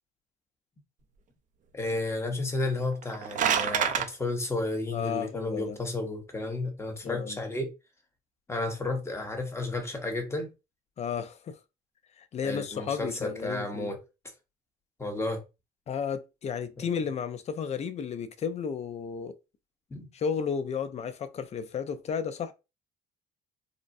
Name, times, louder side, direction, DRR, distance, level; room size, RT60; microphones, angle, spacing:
voice 1, 1.7-7.7 8.5-10.5 12.4-14.0 15.0-15.4 16.8-16.9 19.9-20.1, left 2 dB, 15° left, 0.9 m, -32 dB
sound 1, 2.9-4.1, right 8 dB, 50° right, 0.5 m, -26 dB
voice 2, 4.9-5.8 7.0-7.4 11.0-11.6 12.2-13.9 15.9-19.4 20.1-22.5, left 6 dB, 40° left, 0.5 m, -33 dB
3.8 x 2.1 x 2.5 m
cardioid pair, 110°, 17 cm